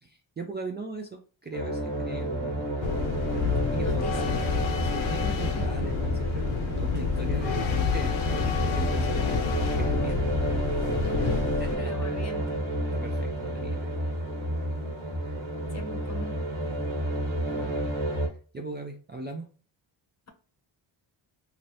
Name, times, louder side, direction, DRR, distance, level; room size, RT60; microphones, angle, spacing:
voice 1, 0.0-2.7 3.7-9.4 9.8-10.3 11.6-12.0 12.9-13.9 15.2-15.4 17.5-17.8 18.2-19.5, right 3 dB, 25° right, 2 dB, 0.4 m, -39 dB
sound 1, 1.5-18.3, right 1 dB, 70° right, 1.2 m, -31 dB
sound 2, 2.8-11.8, left 6 dB, 80° left, 0.8 m, -29 dB
voice 2, 3.8-4.4 5.4-5.7 9.1-9.4 11.0-12.6 15.7-16.4, left 1 dB, 35° left, 5 dB, 0.8 m, -40 dB
2.8 x 2.6 x 3.1 m, 0.40 s
wide cardioid pair, 115°, 47 cm